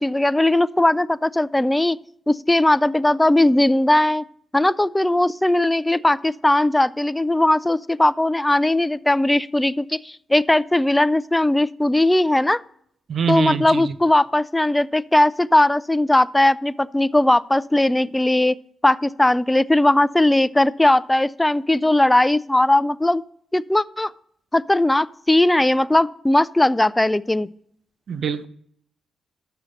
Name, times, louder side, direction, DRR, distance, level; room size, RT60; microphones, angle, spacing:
voice 1, 0.0-2.0 2.3-4.2 4.5-12.6 13.3-18.6 18.8-23.2 23.5-24.1 24.5-27.5, left 1 dB, 15° left, 0.3 m, -18 dB
voice 2, 13.1-13.9 28.1-28.5, right 6 dB, 65° right, 0.5 m, -24 dB
6.7 x 6.3 x 7.5 m
supercardioid pair, 45°, 0 cm